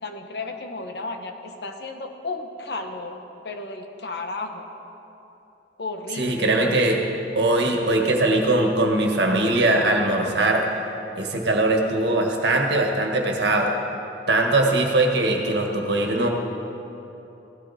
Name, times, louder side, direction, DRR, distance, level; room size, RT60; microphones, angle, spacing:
voice 1, 0.0-3.2 3.4-4.7 5.8-6.8, left 3 dB, 70° left, 5 dB, 1.0 m, -33 dB
voice 2, 6.2-7.0 7.3-10.6 11.1-13.7 14.3-16.3, right 2 dB, 80° right, 1 dB, 1.7 m, -21 dB
16.0 x 12.5 x 4.3 m, 3.0 s
head